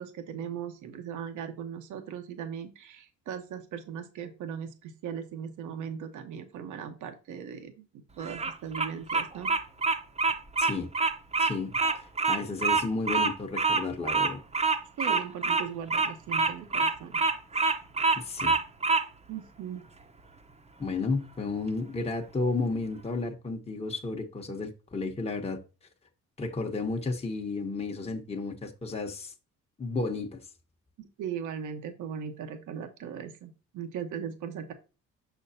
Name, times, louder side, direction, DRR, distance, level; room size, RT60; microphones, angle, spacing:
voice 1, 0.0-9.5 15.0-17.2 19.3-19.8 31.0-34.7, right 8 dB, 80° right, 1.1 m, -38 dB
Bird vocalization bird call bird song, 8.2-19.0, right 4 dB, 20° right, 0.8 m, -26 dB
voice 2, 11.4-14.4 18.2-18.6 20.8-25.6 26.4-29.3 29.8-30.4, left 3 dB, 20° left, 1.0 m, -32 dB
6.3 x 6.2 x 2.7 m
cardioid pair, 90°, 30 cm